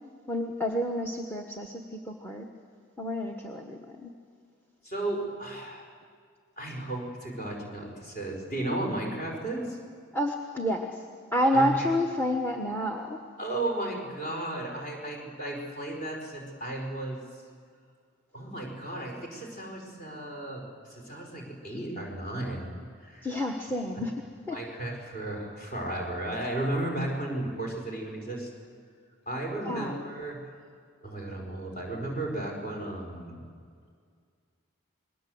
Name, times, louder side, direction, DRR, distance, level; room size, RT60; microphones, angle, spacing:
voice 1, 0.3-2.5 3.0-4.1 10.1-11.0 11.3-13.2 23.2-24.6 29.6-30.0, equal, 10° left, 3 dB, 1.2 m, -29 dB
voice 2, 4.8-5.9 6.6-9.8 11.5-11.9 13.4-17.2 18.3-20.6 20.9-22.8 23.0-23.3 24.5-28.5 29.3-30.4 31.0-33.5, right 1 dB, 35° left, 0 dB, 4.8 m, -34 dB
28.5 x 21.0 x 7.9 m, 2.1 s
head